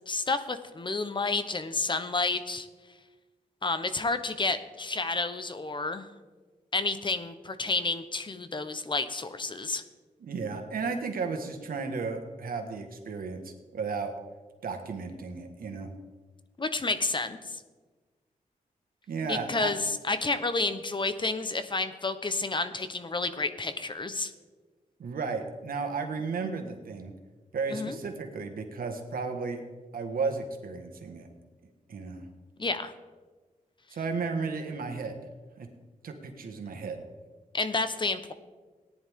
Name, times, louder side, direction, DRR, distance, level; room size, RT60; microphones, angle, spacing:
voice 1, 0.1-2.7 3.6-6.1 6.7-9.8 16.6-17.6 19.3-24.3 27.7-28.0 32.6-32.9 37.5-38.3, left 3 dB, 35° left, 10 dB, 0.9 m, -30 dB
voice 2, 10.2-14.1 14.6-15.9 19.1-19.7 25.0-27.1 27.5-29.6 29.9-31.3 31.9-32.3 33.9-35.1 35.6-35.7 36.0-37.0, right 4 dB, 85° right, 4 dB, 1.6 m, -34 dB
18.0 x 10.5 x 3.7 m, 1.3 s
wide cardioid pair, 100°, 15 cm